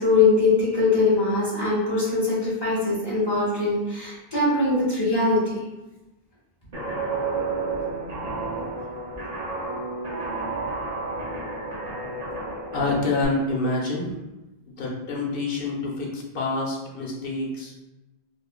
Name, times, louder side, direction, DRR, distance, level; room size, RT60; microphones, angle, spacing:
voice 1, 0.0-5.6, left 3 dB, 25° left, -8 dB, 1.4 m, -22 dB
Guitar, 6.7-13.3, right 3 dB, 40° right, 0.7 m, -31 dB
voice 2, 12.7-14.1 14.7-17.7, left 2 dB, 60° left, -2 dB, 1.0 m, -27 dB
4.7 x 2.4 x 2.3 m, 1.0 s
omnidirectional pair, 1.1 m